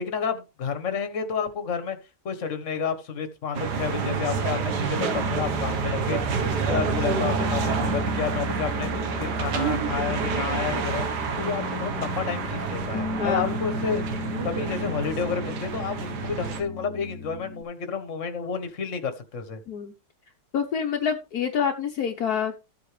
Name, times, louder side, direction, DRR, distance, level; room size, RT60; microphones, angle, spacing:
voice 1, 0.0-2.0 2.2-6.2 6.7-8.9 9.2-11.1 11.4-14.2 14.4-19.6, left 6 dB, 50° left, 8 dB, 1.6 m, -30 dB
sound 1, 3.5-16.6, right 5 dB, 70° right, 1.8 m, -28 dB
Piano, 5.1-17.6, left 2 dB, 10° left, 2.3 m, -34 dB
voice 2, 13.2-13.6 19.7-19.9 20.5-22.6, left 7 dB, 65° left, 3 dB, 1.4 m, -27 dB
14.0 x 8.0 x 3.3 m, 0.28 s
omnidirectional pair, 1.8 m